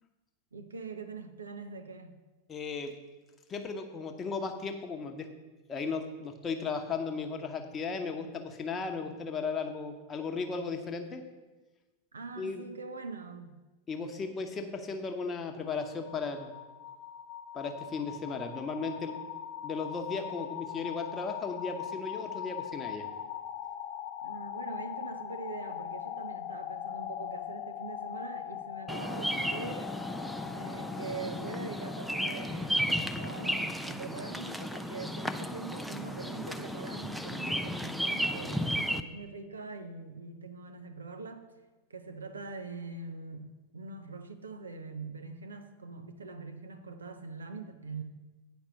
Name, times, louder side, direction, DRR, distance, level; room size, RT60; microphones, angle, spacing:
voice 1, 0.5-2.2 12.1-13.6 24.2-29.9 30.5-41.4 41.9-43.5 43.7-48.0, right 3 dB, 75° right, 7 dB, 0.7 m, -43 dB
voice 2, 2.5-2.9 3.5-5.3 5.7-11.2 12.4-12.6 13.9-16.5 17.5-19.1 19.6-23.0, left 4 dB, 25° left, 4 dB, 0.9 m, -36 dB
sound 1, 15.6-33.5, left 10 dB, 45° left, 0.6 m, -41 dB
Bird vocalization bird call bird song, 28.9-39.0, equal, ahead, 0.4 m, -34 dB
8.9 x 5.2 x 6.6 m, 1.2 s
figure-of-eight pair, 90°, 0 cm